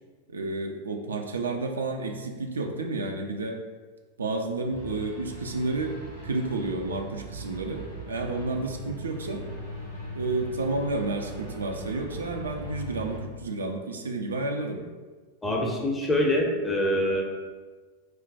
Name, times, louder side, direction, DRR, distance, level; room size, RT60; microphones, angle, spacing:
voice 1, 0.3-3.6 4.2-6.0 6.2-9.5 10.1-14.8, right 2 dB, 70° right, 3 dB, 0.3 m, -31 dB
sound 1, 4.7-13.2, right 1 dB, 90° right, 1.1 m, -40 dB
voice 2, 15.4-17.2, left 1 dB, 10° left, -1 dB, 0.6 m, -25 dB
3.1 x 2.1 x 4.0 m, 1.4 s
figure-of-eight pair, 90°, 0 cm